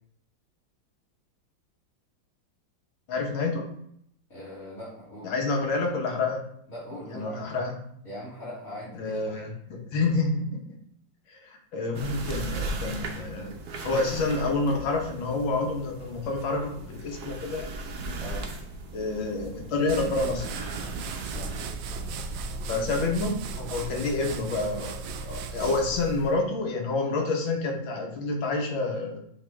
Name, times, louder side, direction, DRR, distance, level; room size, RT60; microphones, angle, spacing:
voice 1, 3.1-3.7 5.2-6.4 7.1-7.8 8.9-10.6 11.3-13.5 13.8-17.8 18.9-20.5 22.7-29.2, left 3 dB, 85° left, 1 dB, 2.0 m, -28 dB
voice 2, 4.3-5.3 6.7-7.5 8.0-9.4 18.2-18.5 21.2-21.6, equal, 45° left, -12 dB, 3.0 m, -41 dB
sound 1, 11.9-22.4, right 2 dB, 60° right, 1.2 m, -37 dB
sound 2, 19.9-26.4, right 4 dB, 75° right, 1.2 m, -36 dB
8.1 x 3.6 x 3.4 m, 0.69 s
omnidirectional pair, 2.1 m